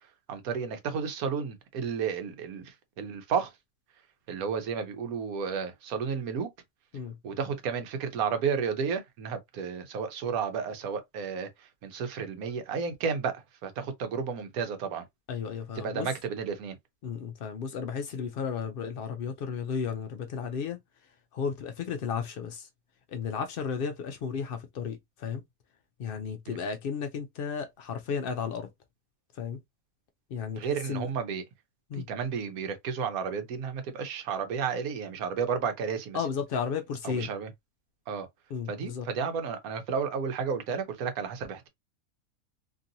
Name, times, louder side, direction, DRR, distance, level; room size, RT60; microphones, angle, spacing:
voice 1, 0.3-3.5 4.3-6.5 7.2-15.0 15.8-16.8 26.5-26.6 30.6-31.4 31.9-36.2 37.0-37.5 38.1-38.3 38.7-41.7, right 6 dB, 80° right, 1.2 m, -32 dB
voice 2, 15.3-16.1 17.0-20.8 21.3-22.7 23.1-25.4 26.0-28.7 29.3-29.6 30.3-31.1 31.9-32.1 36.1-37.3 38.5-39.1, left 6 dB, 80° left, 0.4 m, -34 dB
3.0 x 2.6 x 2.7 m
omnidirectional pair, 1.5 m